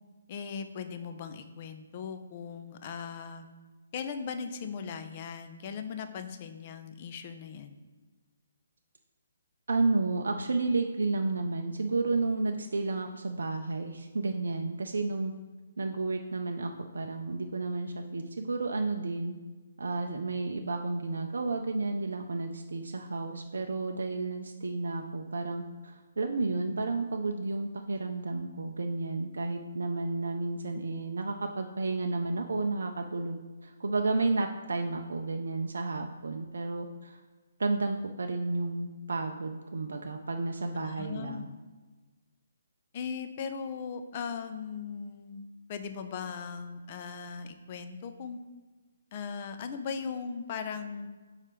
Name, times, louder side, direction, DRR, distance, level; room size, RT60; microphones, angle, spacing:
voice 1, 0.3-3.5 3.9-7.8 40.7-41.5 42.9-45.4 45.7-48.4 49.1-51.1, left 6 dB, 35° left, 8 dB, 0.5 m, -38 dB
voice 2, 9.7-15.3 15.8-19.3 19.8-37.2 37.6-41.5, right 3 dB, 65° right, 4 dB, 0.4 m, -32 dB
4.8 x 4.3 x 5.1 m, 1.3 s
figure-of-eight pair, 135°, 0 cm